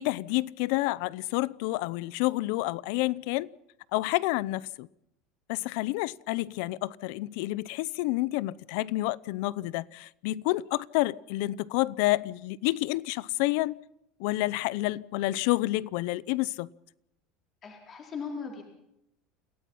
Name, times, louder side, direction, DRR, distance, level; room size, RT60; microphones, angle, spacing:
voice 1, 0.0-3.5 3.9-4.9 5.5-13.8 14.2-16.7, left 19 dB, 55° left, 0.7 m, -29 dB
voice 2, 17.6-18.6, left 5 dB, 20° left, 4.1 m, -38 dB
28.5 x 17.5 x 5.6 m
cardioid pair, 180°, 0 cm